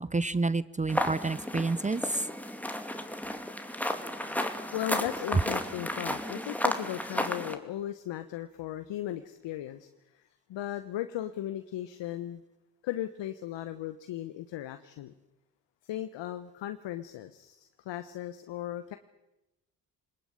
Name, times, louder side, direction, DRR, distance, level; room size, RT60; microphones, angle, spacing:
voice 1, 0.0-2.2, right 3 dB, 15° right, 18 dB, 0.8 m, -29 dB
sound 1, 0.9-7.5, left 1 dB, 5° left, 2.7 m, -33 dB
voice 2, 4.4-12.4 12.8-15.1 15.8-19.0, left 12 dB, 65° left, 9 dB, 1.3 m, -37 dB
22.5 x 20.0 x 8.9 m, 0.96 s
hypercardioid pair, 50°, 46 cm